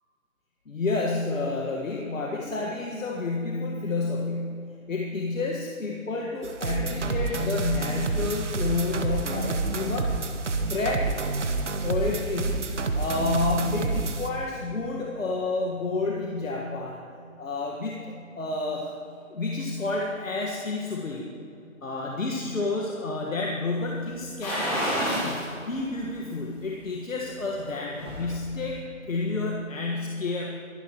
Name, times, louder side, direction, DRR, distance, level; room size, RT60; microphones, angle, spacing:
voice 1, 0.7-4.6 4.9-10.2 10.7-11.2 11.8-12.6 12.9-17.0 17.4-18.1 18.4-18.9 19.3-21.3 21.8-30.5, left 3 dB, 65° left, -1 dB, 1.7 m, -30 dB
sound 1, 6.4-14.3, right 3 dB, 55° right, 1.2 m, -29 dB
sound 2, 24.4-25.5 25.9-26.0 27.5-28.3 28.6-28.7, equal, 10° left, 3.4 m, -29 dB
23.0 x 10.5 x 3.0 m, 2.6 s
hypercardioid pair, 175°, 42 cm